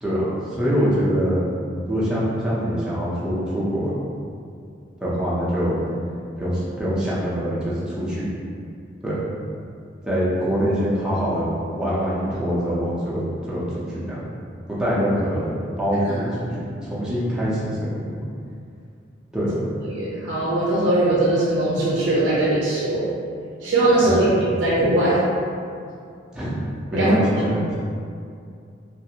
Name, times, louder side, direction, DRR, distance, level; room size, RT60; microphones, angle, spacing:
voice 1, 0.0-1.5 1.9-3.9 5.0-5.8 6.4-8.4 9.0-9.2 10.0-14.3 14.8-18.2 19.3-19.6 24.0-24.1 24.4-24.5 26.3-27.7, equal, 5° right, -9 dB, 0.6 m, -24 dB
voice 2, 19.8-23.0 23.6-24.3 24.6-25.2 26.9-27.1, right 1 dB, 75° right, -7 dB, 0.5 m, -20 dB
2.5 x 2.4 x 2.8 m, 2.4 s
head